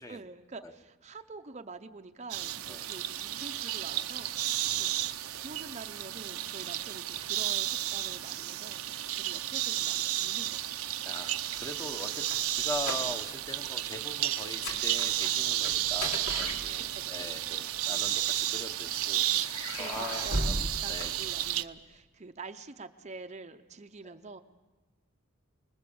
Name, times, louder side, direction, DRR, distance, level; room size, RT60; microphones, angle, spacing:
voice 1, 0.0-10.9 16.9-17.5 19.3-24.4, right 3 dB, 30° right, 7 dB, 0.7 m, -47 dB
sound 1, 2.3-21.6, right 13 dB, 90° right, 0.8 m, -32 dB
voice 2, 4.6-5.2 8.9-9.0 11.0-21.1 24.0-24.1, left 1 dB, 15° left, 7 dB, 1.0 m, -42 dB
sound 2, 11.6-13.5 13.7-14.0 14.4-17.2 18.0-18.9 19.5-21.8, left 1 dB, 90° left, 3.6 m, -37 dB
29.5 x 20.5 x 7.1 m, 1.3 s
head